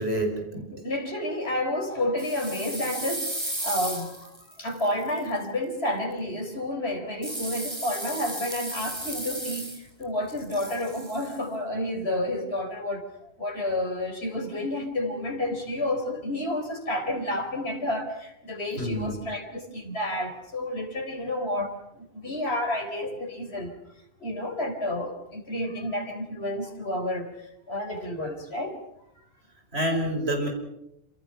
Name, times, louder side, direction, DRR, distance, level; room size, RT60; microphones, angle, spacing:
voice 1, 0.0-0.7 18.8-19.2 29.7-30.5, right 1 dB, 80° right, 3 dB, 5.9 m, -27 dB
voice 2, 0.7-23.8 24.2-27.3 27.7-28.8, left 1 dB, 75° left, 3 dB, 4.4 m, -30 dB
sound 1, 2.2-5.2 7.2-10.0 10.3-11.4, right 1 dB, 25° right, 4.1 m, -35 dB
27.5 x 27.0 x 5.7 m, 0.82 s
omnidirectional pair, 1.1 m